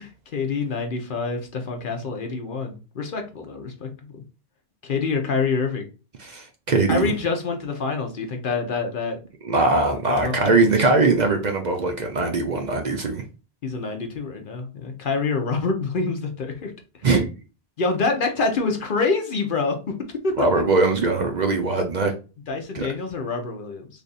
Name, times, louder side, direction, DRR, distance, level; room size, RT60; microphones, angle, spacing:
voice 1, 0.0-4.2 4.8-5.9 6.9-9.2 10.1-10.6 13.6-16.7 17.8-19.9 20.2-20.5 22.5-23.9, left 4 dB, 55° left, 4 dB, 0.8 m, -26 dB
voice 2, 6.2-7.1 9.4-13.2 17.0-17.3 20.4-22.1 22.7-22.9, right 3 dB, 50° right, 3 dB, 0.6 m, -21 dB
3.3 x 2.5 x 3.9 m, 0.32 s
omnidirectional pair, 1.1 m